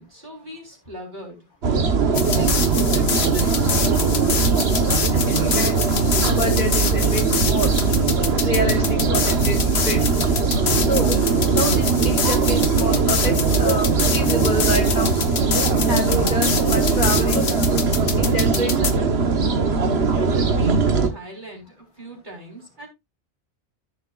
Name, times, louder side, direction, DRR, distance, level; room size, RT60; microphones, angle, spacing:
voice 1, 0.0-1.5 2.1-4.3 20.2-22.9, right 1 dB, 45° right, 0 dB, 4.0 m, -40 dB
sound 1, 1.6-21.1, right 4 dB, 65° right, 1.5 m, -20 dB
sound 2, 2.1-18.9, left 6 dB, 70° left, 1.3 m, -27 dB
voice 2, 5.1-5.9 6.2-7.7 8.4-9.6 9.8-10.0 10.7-11.2 11.5-15.2 15.9-17.4 18.2-18.9, equal, 50° left, 4 dB, 2.4 m, -27 dB
14.0 x 6.5 x 2.4 m, 0.21 s
omnidirectional pair, 1.1 m